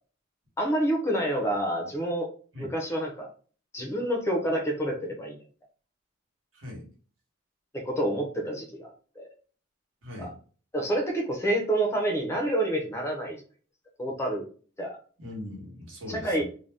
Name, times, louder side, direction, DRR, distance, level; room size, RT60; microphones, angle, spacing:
voice 1, 0.6-2.3 2.6-3.3 3.7-5.4 7.7-8.9 9.2-9.3 10.2-10.3 10.7-13.4 14.0-14.4 14.8-15.0 16.1-16.4, right 1 dB, 15° left, 1 dB, 0.5 m, -28 dB
voice 2, 6.5-6.8 10.0-10.3 15.2-16.4, left 1 dB, 75° right, -2 dB, 1.2 m, -40 dB
2.6 x 2.1 x 3.3 m, 0.40 s
head